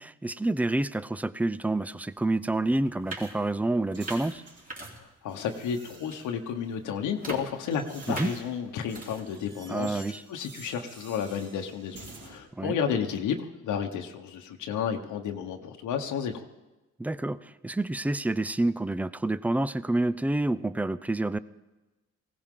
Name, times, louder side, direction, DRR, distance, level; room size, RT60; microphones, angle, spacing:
voice 1, 0.0-4.4 8.1-8.3 9.7-10.2 12.6-12.8 17.0-21.4, right 2 dB, 5° right, 16 dB, 0.4 m, -28 dB
sound 1, 2.2-2.3 2.7-5.3 5.6-6.2 6.6-9.5, right 2 dB, 25° right, 3.3 m, -42 dB
sound 2, 2.3-4.7 5.3-6.5 7.2-12.4, right 3 dB, 55° right, 4.3 m, -50 dB
voice 2, 4.9-10.0 10.3-16.4, left 7 dB, 85° left, 4 dB, 1.2 m, -32 dB
19.0 x 16.5 x 3.8 m, 1.1 s
cardioid pair, 90°, 30 cm